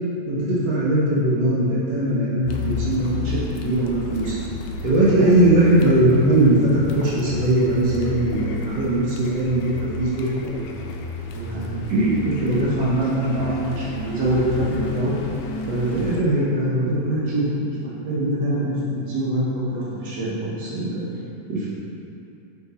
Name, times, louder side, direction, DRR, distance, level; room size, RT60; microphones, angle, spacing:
voice 1, 0.3-4.3 4.8-10.6 11.3-15.1 15.7-17.7 18.0-19.4 19.7-21.1 21.5-21.7, right 1 dB, 70° right, -7 dB, 1.0 m, -21 dB
Car, 2.5-16.2, left 4 dB, 90° left, 2.1 m, -33 dB
5.2 x 5.0 x 4.0 m, 2.8 s
omnidirectional pair, 3.4 m